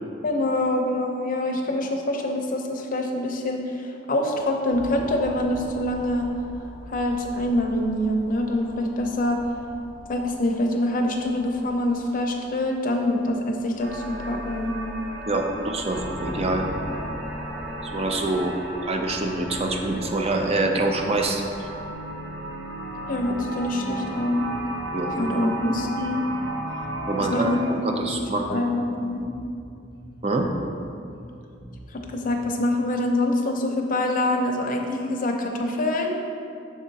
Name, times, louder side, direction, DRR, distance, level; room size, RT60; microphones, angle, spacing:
voice 1, 0.2-6.3 6.9-9.4 10.1-14.8 23.1-24.4 25.2-26.2 27.2-27.6 28.0-28.1 28.5-29.2 31.9-36.2, left 1 dB, 50° left, 2 dB, 0.6 m, -25 dB
sound 1, 4.7-21.9, equal, 5° left, 0.9 m, -41 dB
sound 2, 13.8-27.7, right 1 dB, 75° right, 0.7 m, -35 dB
voice 2, 15.3-16.6 17.8-18.6 18.8-21.7 24.9-25.6 27.1-27.5 27.8-28.6 30.2-30.5, right 2 dB, 35° right, 3 dB, 0.5 m, -25 dB
Bass guitar, 23.2-32.8, right 1 dB, 20° right, 1.2 m, -45 dB
6.5 x 3.7 x 4.0 m, 2.5 s
head